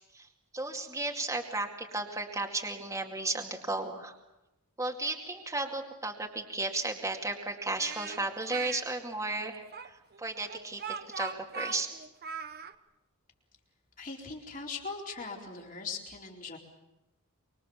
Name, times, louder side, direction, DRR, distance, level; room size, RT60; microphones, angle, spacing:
voice 1, 0.5-4.1 4.8-11.9, right 2 dB, 15° right, 1 dB, 2.3 m, -34 dB
Speech, 7.8-8.8 9.7-12.7, right 5 dB, 45° right, 1.1 m, -40 dB
voice 2, 14.0-16.6, left 4 dB, 40° left, 0 dB, 4.2 m, -40 dB
25.5 x 24.0 x 7.2 m, 0.95 s
head